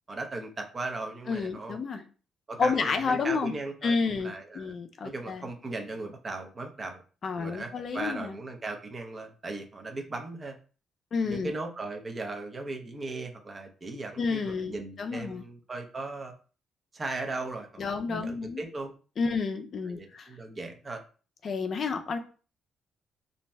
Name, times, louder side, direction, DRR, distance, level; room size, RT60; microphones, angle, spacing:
voice 1, 0.1-1.8 2.5-4.7 5.0-7.0 7.4-10.6 11.2-16.3 16.9-18.9 19.9-21.0, right 3 dB, 30° right, 4 dB, 0.6 m, -37 dB
voice 2, 1.3-2.0 2.6-3.5 3.8-5.5 7.2-8.3 11.1-11.5 14.2-15.5 17.8-18.6 19.2-20.3 21.4-22.2, left 4 dB, 50° left, 6 dB, 0.4 m, -30 dB
2.6 x 2.1 x 3.3 m, 0.37 s
cardioid pair, 90°, 0 cm